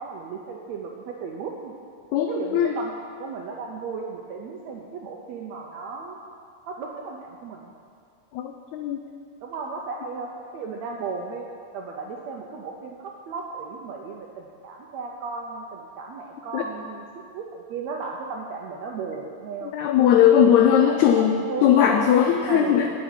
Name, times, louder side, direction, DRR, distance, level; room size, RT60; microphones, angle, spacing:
voice 1, 0.0-1.7 2.3-6.2 6.7-7.8 9.4-11.4 11.7-19.7 20.7-22.1 22.4-22.9, right 4 dB, 75° right, 0 dB, 1.6 m, -35 dB
voice 2, 2.1-2.7 8.3-9.0 16.5-16.6 19.6-22.9, left 9 dB, 85° left, 5 dB, 1.6 m, -19 dB
8.5 x 7.6 x 8.9 m, 2.3 s
omnidirectional pair, 4.0 m